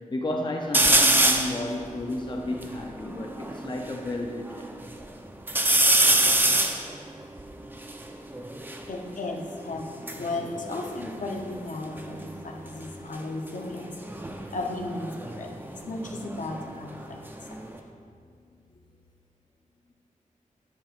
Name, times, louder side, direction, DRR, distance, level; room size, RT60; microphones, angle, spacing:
voice 1, 0.0-4.7, left 1 dB, 35° left, 1 dB, 0.6 m, -32 dB
sound 1, 0.7-1.6 2.1-2.2 2.4-4.0 4.5-5.1 5.5-8.9 9.8-11.7 12.0-12.5 14.0-16.7 17.0-17.8, right 1 dB, 15° right, 0.5 m, -25 dB
voice 2, 8.9-17.6, left 2 dB, 70° left, 1 dB, 0.9 m, -35 dB
10.5 x 7.5 x 2.5 m, 2.3 s
wide cardioid pair, 120°, 14 cm